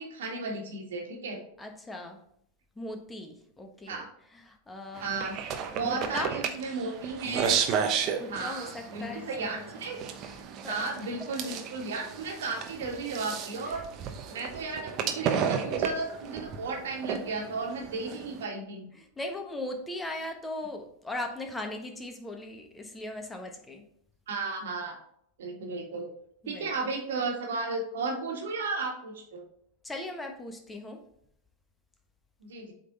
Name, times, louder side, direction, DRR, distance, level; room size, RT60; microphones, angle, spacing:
voice 1, 0.0-1.4 3.9-4.1 5.0-5.3 5.7-7.6 8.3-10.0 10.7-13.8 14.3-18.9 24.3-25.0 25.4-26.1 26.5-29.4 32.4-32.7, right 3 dB, 70° right, 1 dB, 1.7 m, -34 dB
voice 2, 1.6-2.2 2.8-4.0 4.3-5.4 5.8-6.4 8.2-9.7 10.2-10.4 10.6-10.8 13.5-13.8 17.3-17.4 18.9-23.9 26.4-26.7 29.8-31.0, left 1 dB, 10° left, 3 dB, 1.2 m, -39 dB
sound 1, 5.0-18.5, right 7 dB, 40° right, 0.9 m, -33 dB
8.1 x 3.9 x 4.1 m, 0.69 s
hypercardioid pair, 90°, 0 cm